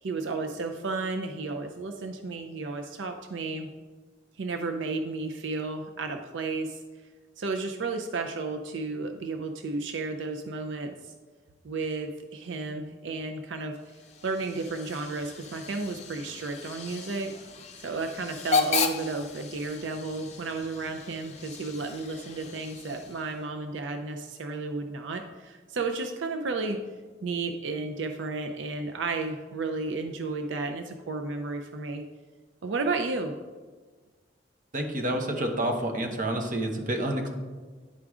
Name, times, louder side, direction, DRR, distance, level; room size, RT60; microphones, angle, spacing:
voice 1, 0.0-3.7 4.3-6.8 7.4-11.1 11.6-13.7 14.2-17.3 17.8-26.8 27.2-32.0 32.6-33.3, right 3 dB, 80° right, 5 dB, 0.5 m, -33 dB
Hiss / Train / Alarm, 13.8-23.4, left 4 dB, 35° left, 0.6 m, -35 dB
voice 2, 34.7-37.3, right 1 dB, 45° right, 3 dB, 1.0 m, -29 dB
10.0 x 4.8 x 3.6 m, 1.4 s
head